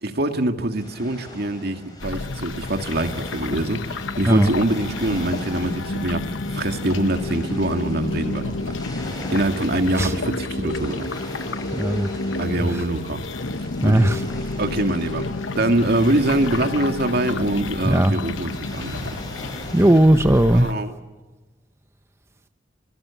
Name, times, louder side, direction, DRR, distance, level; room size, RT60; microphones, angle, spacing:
voice 1, 0.0-8.8 9.3-11.1 12.4-13.2 13.8-14.0 14.6-15.3 15.6-19.1 20.5-20.9, right 1 dB, 55° right, 6 dB, 2.2 m, -24 dB
sound 1, 0.8-20.0, left 1 dB, 20° left, 7.4 m, -41 dB
sound 2, 2.0-20.7, left 2 dB, 90° left, 1.0 m, -30 dB
voice 2, 11.7-12.1 13.8-14.2 17.9-18.1 19.7-20.7, right 1 dB, 15° right, 8 dB, 0.8 m, -16 dB
26.0 x 21.0 x 7.2 m, 1.2 s
head